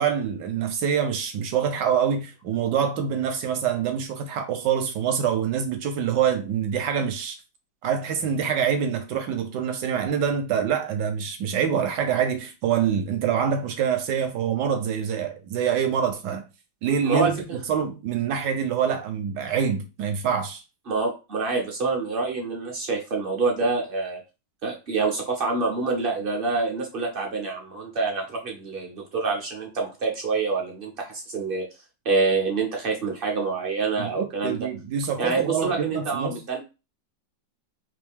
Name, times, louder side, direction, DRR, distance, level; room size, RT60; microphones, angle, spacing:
voice 1, 0.0-7.4 7.8-16.4 16.8-17.3 17.7-20.6 34.0-36.4, right 8 dB, 70° right, 1.2 m, -25 dB
voice 2, 20.9-24.2 24.6-31.7 32.0-34.6 35.2-36.6, right 4 dB, 50° right, 0.7 m, -26 dB
3.2 x 2.7 x 3.5 m
omnidirectional pair, 2.0 m